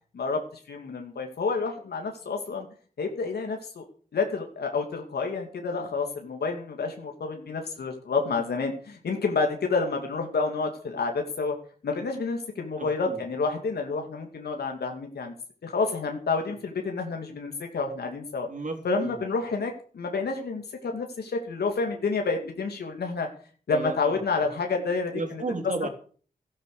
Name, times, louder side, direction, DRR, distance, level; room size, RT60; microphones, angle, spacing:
voice 1, 0.1-2.7 3.0-3.9 4.1-11.6 11.8-15.3 15.6-18.5 18.8-23.3 23.7-25.4 25.8-25.9, left 4 dB, 90° left, 3 dB, 2.6 m, -29 dB
voice 2, 12.8-13.2 18.5-19.3 23.7-24.2 25.1-25.9, right 3 dB, 50° right, 5 dB, 3.5 m, -33 dB
14.0 x 10.5 x 6.7 m, 0.43 s
cardioid pair, 65°, 16 cm